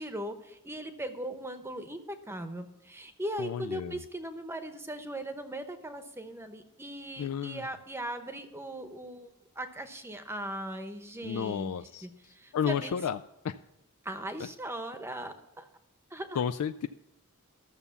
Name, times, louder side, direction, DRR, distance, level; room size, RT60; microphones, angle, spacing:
voice 1, 0.0-9.3 9.6-11.7 12.0-13.0 14.0-15.7 16.1-16.4, right 1 dB, 10° right, 8 dB, 0.9 m, -39 dB
voice 2, 3.4-4.0 7.2-7.6 11.2-12.1 12.5-13.2 13.4-13.6 16.4-16.9, left 8 dB, 75° left, 10 dB, 0.4 m, -32 dB
13.0 x 6.8 x 7.0 m, 0.86 s
head